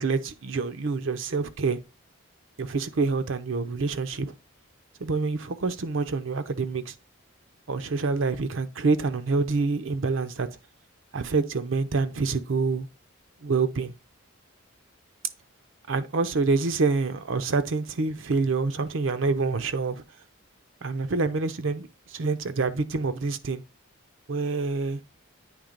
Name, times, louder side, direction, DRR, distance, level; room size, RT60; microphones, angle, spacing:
voice 1, 0.0-1.8 2.6-4.3 5.0-6.9 7.7-10.5 11.1-12.9 13.4-13.9 15.9-20.0 20.8-23.6 24.3-25.0, right 4 dB, 65° right, 0.6 m, -27 dB
8.8 x 3.2 x 5.1 m
head